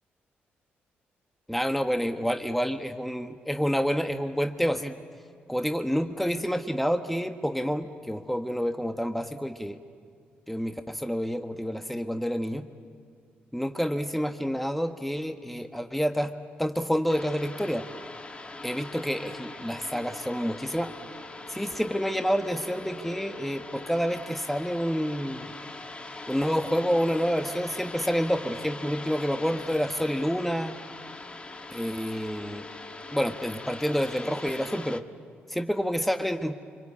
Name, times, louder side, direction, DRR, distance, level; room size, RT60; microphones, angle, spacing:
voice 1, 1.5-5.0 5.5-9.8 10.5-12.6 13.5-16.3 16.6-17.8 18.6-20.9 21.5-25.5 26.3-30.8 31.7-32.7 33.1-35.0 35.5-36.5, equal, 5° left, 7 dB, 1.3 m, -28 dB
sound 1, 17.1-35.0, left 2 dB, 25° left, 1.3 m, -41 dB
25.0 x 25.0 x 8.5 m, 2.2 s
supercardioid pair, 65°, 4 cm